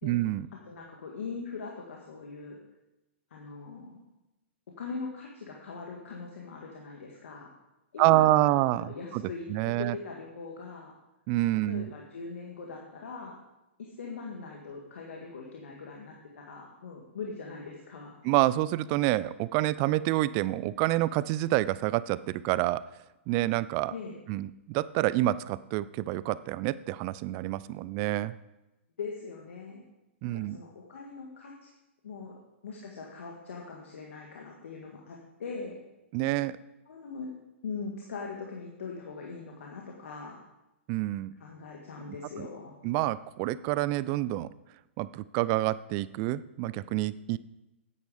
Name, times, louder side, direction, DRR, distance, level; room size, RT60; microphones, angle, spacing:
voice 1, 0.0-0.5 8.0-9.2 9.5-10.0 11.3-11.9 18.2-22.8 23.3-23.9 24.3-28.3 30.2-30.6 36.1-36.6 40.9-41.3 42.4-42.5 42.8-44.5 45.0-47.4, right 16 dB, 40° right, 17 dB, 0.4 m, -27 dB
voice 2, 0.6-2.6 3.3-4.0 4.8-7.5 7.9-8.5 8.9-9.5 9.8-10.9 11.6-13.4 13.8-18.2 23.9-24.2 29.0-29.8 30.2-31.5 32.0-32.3 32.6-35.8 36.9-37.3 37.6-40.4 41.4-42.8, left 4 dB, 75° left, -1 dB, 1.7 m, -41 dB
9.5 x 8.3 x 5.0 m, 0.98 s
hypercardioid pair, 130°, 7 cm